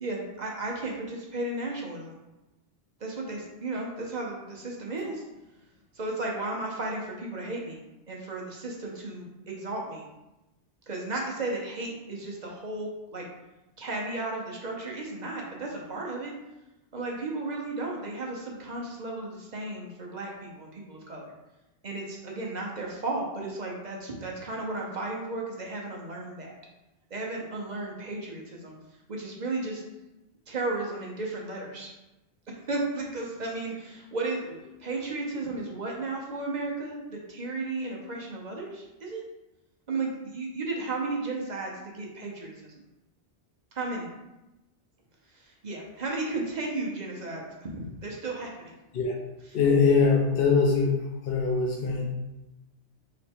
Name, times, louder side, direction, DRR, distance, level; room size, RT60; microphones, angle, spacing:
voice 1, 0.0-2.1 3.0-5.2 5.9-7.8 8.1-10.0 10.9-13.3 13.8-16.3 16.9-21.3 21.8-26.6 27.1-28.7 29.1-29.8 30.5-31.9 32.5-39.2 39.9-42.7 43.7-44.1 45.3-48.7, right 2 dB, 45° right, -1 dB, 0.8 m, -34 dB
voice 2, 49.5-52.1, left 4 dB, 60° left, -1 dB, 0.7 m, -23 dB
3.2 x 3.1 x 4.4 m, 0.98 s
omnidirectional pair, 1.1 m